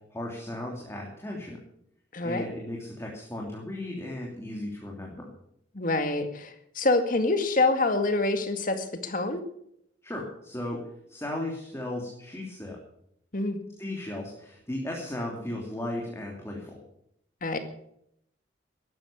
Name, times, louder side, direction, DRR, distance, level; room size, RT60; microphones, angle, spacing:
voice 1, 0.1-1.6 2.2-5.3 10.0-10.8 11.1-12.8 13.8-16.8, left 1 dB, 15° left, -2 dB, 2.9 m, -36 dB
voice 2, 2.1-2.5 5.7-9.4 13.3-13.6 17.4-17.6, left 2 dB, 45° left, 7 dB, 2.0 m, -26 dB
14.0 x 12.0 x 7.1 m, 0.73 s
head